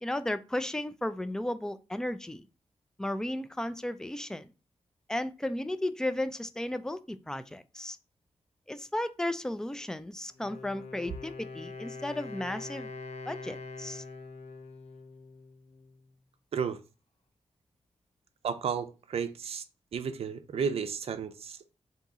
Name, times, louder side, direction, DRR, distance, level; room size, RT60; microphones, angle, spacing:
voice 1, 0.0-2.5 3.0-4.5 5.1-8.0 8.7-12.9 13.3-14.0, left 1 dB, 5° left, 0.3 m, -34 dB
Wind instrument woodwind instrument, 10.3-16.1, left 3 dB, 75° left, 0.5 m, -44 dB
voice 2, 18.4-19.6 19.9-21.7, right 6 dB, 65° right, 0.5 m, -33 dB
3.5 x 2.8 x 4.1 m
wide cardioid pair, 95°, 11 cm